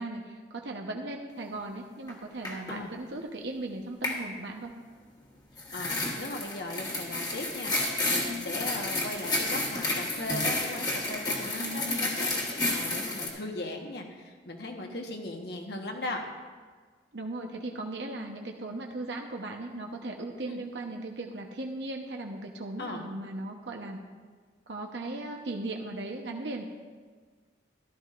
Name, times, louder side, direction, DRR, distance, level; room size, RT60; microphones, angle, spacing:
voice 1, 0.0-4.7 11.6-12.0 14.8-15.0 17.1-24.0 24.7-26.6, right 2 dB, 75° right, 1 dB, 0.9 m, -37 dB
sound 1, 2.1-2.2 2.4-2.8 4.0-4.2 5.6-13.3, left 2 dB, 20° left, 1.3 m, -31 dB
voice 2, 5.7-16.3 20.5-20.6 22.8-23.0, left 2 dB, 65° left, 2 dB, 1.2 m, -38 dB
14.0 x 12.5 x 2.5 m, 1.5 s
head